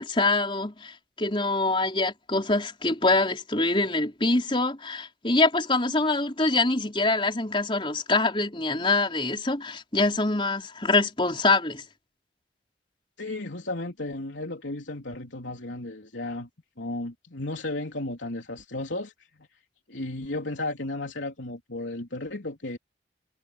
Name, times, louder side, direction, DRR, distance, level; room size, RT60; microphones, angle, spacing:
voice 1, 0.0-11.8, left 2 dB, 30° left, 4.5 m, -25 dB
voice 2, 13.2-16.5 16.8-19.1 19.4-19.5 19.9-22.8, left 2 dB, 90° left, 3.7 m, -34 dB
head